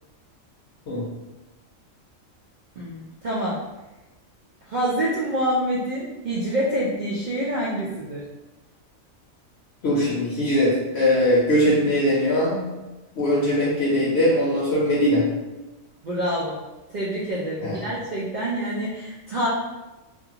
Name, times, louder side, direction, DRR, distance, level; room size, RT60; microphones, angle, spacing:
voice 1, 2.8-3.6 4.7-8.2 16.0-16.6 16.9-19.5, equal, 85° right, -6 dB, 0.4 m, -26 dB
voice 2, 9.8-12.6 13.2-15.3 17.6-17.8, left 1 dB, 60° left, -6 dB, 0.8 m, -21 dB
2.6 x 2.4 x 2.7 m, 1.1 s
omnidirectional pair, 1.4 m